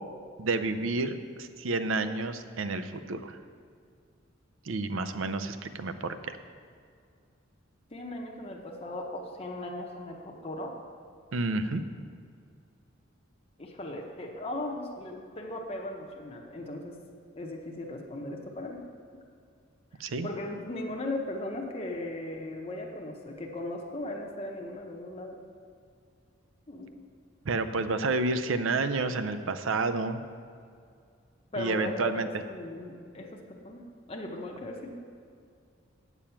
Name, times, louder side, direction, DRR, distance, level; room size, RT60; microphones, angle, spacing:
voice 1, 0.4-3.4 4.7-6.4 11.3-11.8 20.0-20.3 27.5-30.2 31.6-32.3, right 3 dB, 75° right, 10 dB, 0.5 m, -30 dB
voice 2, 7.9-10.8 13.6-17.0 17.4-18.8 20.0-25.4 26.7-27.0 31.5-33.8 34.1-34.9, left 1 dB, 30° left, 0 dB, 0.8 m, -37 dB
8.6 x 7.0 x 5.7 m, 2.3 s
head